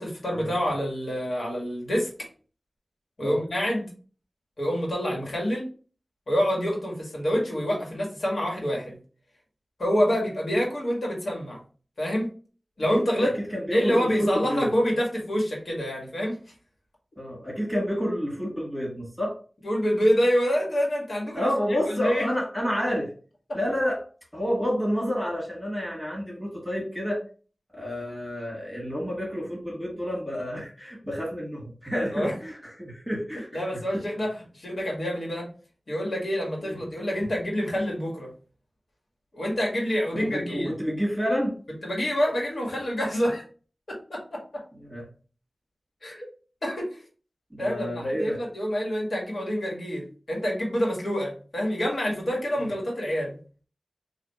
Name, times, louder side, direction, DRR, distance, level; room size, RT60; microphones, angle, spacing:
voice 1, 0.0-2.3 3.2-3.9 4.6-5.7 6.3-9.0 9.8-11.6 12.0-12.3 12.8-13.3 13.7-16.3 19.6-21.5 21.9-22.2 32.1-32.3 33.5-35.5 35.9-38.3 39.3-40.7 41.8-43.4 43.9-44.6 46.0-46.3 46.6-47.0 47.6-53.4, equal, 70° left, -2 dB, 1.7 m, -27 dB
voice 2, 12.9-14.7 17.2-19.4 21.3-23.1 23.5-24.1 24.3-27.2 27.7-33.6 36.6-36.8 40.1-41.5 44.7-45.1 47.5-48.4 52.6-52.7, equal, 5° right, -3 dB, 1.8 m, -29 dB
3.3 x 2.7 x 4.2 m, 0.39 s
wide cardioid pair, 50°, 0 cm